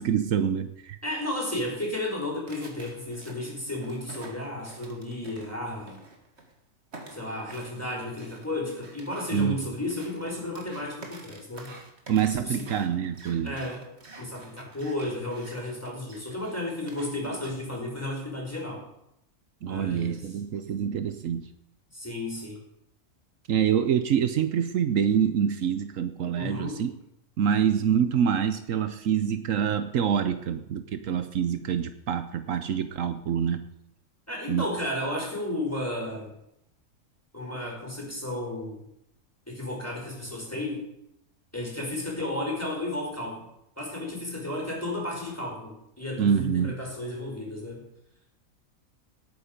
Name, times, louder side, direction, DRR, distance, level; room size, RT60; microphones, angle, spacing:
voice 1, 0.0-1.0 9.3-9.6 12.1-13.5 19.6-21.5 23.5-26.9 27.4-33.6 34.5-34.7 46.2-46.7, right 8 dB, 70° right, 10 dB, 1.1 m, -26 dB
voice 2, 1.0-6.0 7.1-11.7 12.3-12.7 13.4-13.8 14.2-18.8 19.6-20.3 21.9-22.6 26.3-26.8 34.3-36.3 37.3-38.8 39.5-40.9 41.5-43.4 43.8-47.9, left 1 dB, 10° left, -1 dB, 4.8 m, -33 dB
sound 1, 2.5-6.5 6.9-17.8, right 2 dB, 50° right, 2.1 m, -49 dB
18.5 x 8.8 x 5.2 m, 0.80 s
omnidirectional pair, 1.4 m